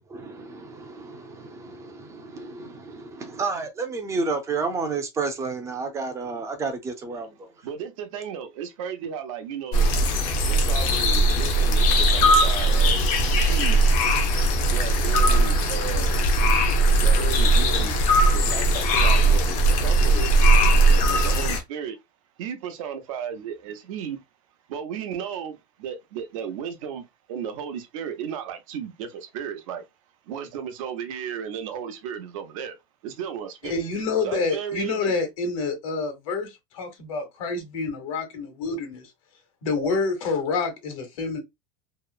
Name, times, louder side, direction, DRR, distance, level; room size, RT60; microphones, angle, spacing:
voice 1, 0.1-7.5, right 4 dB, 15° right, 0.4 m, -31 dB
voice 2, 7.6-9.9 10.5-13.9 14.7-16.2 17.0-18.0 18.3-20.3 20.9-22.0 22.4-24.2 24.7-29.8 30.3-32.8 33.0-33.8 34.2-35.1, right 8 dB, 80° right, 0.7 m, -34 dB
sound 1, 9.7-21.6, right 1 dB, 45° left, 0.6 m, -19 dB
voice 3, 33.6-39.0 39.6-41.4, left 4 dB, 75° left, 1.2 m, -28 dB
2.9 x 2.0 x 2.3 m
supercardioid pair, 155°, 17 cm